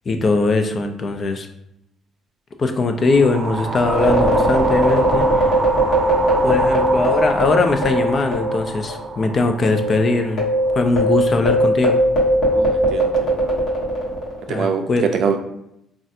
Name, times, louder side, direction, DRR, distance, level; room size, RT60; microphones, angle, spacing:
voice 1, 0.1-1.5 2.6-5.5 6.4-10.4 10.7-12.0 14.5-15.0, left 3 dB, 35° left, 6 dB, 0.3 m, -20 dB
sound 1, 2.9-11.2, right 2 dB, 35° right, 0.8 m, -26 dB
sound 2, 3.8-8.6 8.9-9.0 9.6-14.4, equal, 65° left, 1.0 m, -19 dB
voice 2, 12.5-13.6 14.5-14.8 15.1-15.4, right 6 dB, 55° right, 5 dB, 0.4 m, -24 dB
3.2 x 2.3 x 2.7 m, 0.80 s
cardioid pair, 135°, 0 cm